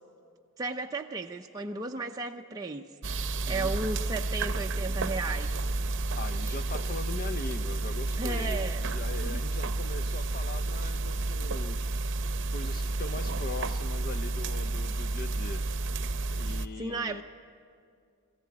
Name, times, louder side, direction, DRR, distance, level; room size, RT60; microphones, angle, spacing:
voice 1, 0.6-5.6 8.2-8.8 9.2-9.4 16.8-17.2, right 3 dB, 15° right, 1 dB, 0.5 m, -35 dB
sound 1, 3.0-16.7, right 2 dB, 55° right, 0.7 m, -31 dB
voice 2, 3.4-3.7 6.2-11.8 12.5-15.6 16.3-17.2, left 3 dB, 40° left, 12 dB, 0.6 m, -41 dB
22.5 x 14.5 x 8.5 m, 2.3 s
head